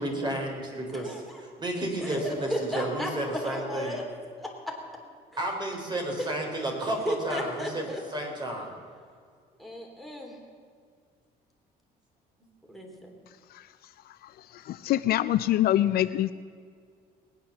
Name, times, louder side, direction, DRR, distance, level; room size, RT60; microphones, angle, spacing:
voice 1, 0.0-4.0 5.4-7.9 8.1-8.7, right 1 dB, 25° right, 1 dB, 3.9 m, -32 dB
voice 2, 0.9-1.4 2.0-4.0 4.4-4.7 6.2-6.3 6.8-8.0 9.6-10.4 12.7-13.2, left 1 dB, ahead, -1 dB, 3.2 m, -35 dB
voice 3, 14.5-16.3, left 13 dB, 65° left, 13 dB, 0.5 m, -24 dB
19.5 x 9.3 x 7.1 m, 2.1 s
cardioid pair, 110°, 17 cm